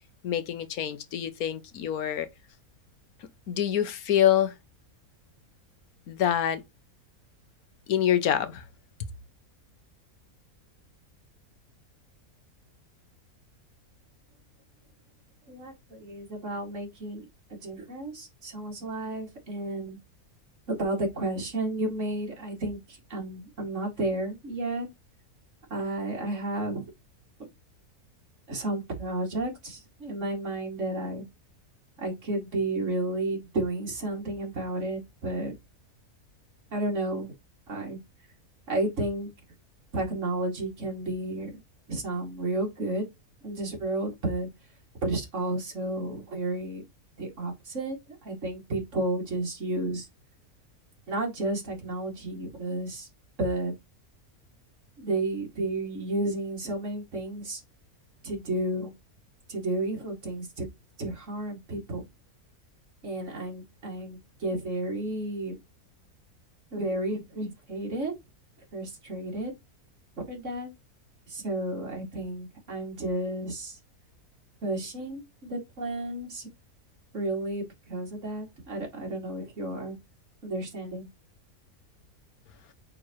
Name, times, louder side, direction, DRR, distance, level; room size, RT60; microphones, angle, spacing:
voice 1, 0.2-2.3 3.5-4.5 6.1-6.6 7.9-8.6, left 10 dB, 75° left, 1.3 m, -26 dB
voice 2, 15.5-17.3 17.6-20.0 20.7-24.9 25.7-26.8 28.5-31.2 32.0-35.5 36.7-37.3 37.7-38.0 38.7-39.3 39.9-41.6 41.9-43.0 43.4-44.5 45.0-46.8 47.2-50.1 51.1-53.1 53.4-53.7 55.0-57.6 58.2-58.9 59.5-60.7 61.0-62.0 63.0-65.6 66.7-68.1 68.7-69.5 70.3-70.7 71.3-73.8 74.6-76.5 77.1-77.6 77.9-80.0 80.4-81.1, right 2 dB, 55° right, 2.7 m, -32 dB
8.7 x 3.9 x 3.1 m
omnidirectional pair, 1.6 m